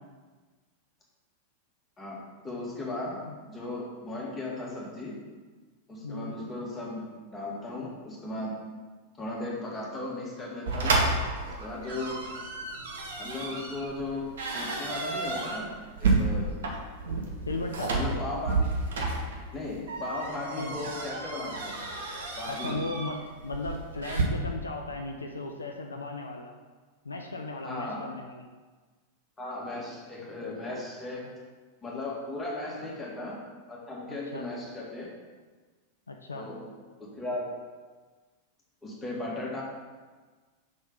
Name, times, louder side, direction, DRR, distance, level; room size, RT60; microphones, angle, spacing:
voice 1, 2.0-3.2 3.5-5.2 5.9-8.6 9.2-11.0 11.6-12.3 13.2-16.5 17.9-19.0 19.5-21.8 22.4-22.8 27.6-28.1 29.4-31.3 31.8-33.4 33.7-35.1 36.3-36.6 37.0-37.6 38.8-39.6, left 2 dB, 15° left, -5 dB, 1.9 m, -36 dB
voice 2, 6.0-6.3 17.5-18.0 20.5-20.7 22.5-26.5 27.0-28.5 31.2-31.3 32.8-33.0 34.1-34.5 36.1-36.5, left 2 dB, 75° left, 3 dB, 0.5 m, -36 dB
sound 1, 10.7-24.2, right 3 dB, 65° right, 1.0 m, -31 dB
5.3 x 4.2 x 5.4 m, 1.4 s
figure-of-eight pair, 90°, 0 cm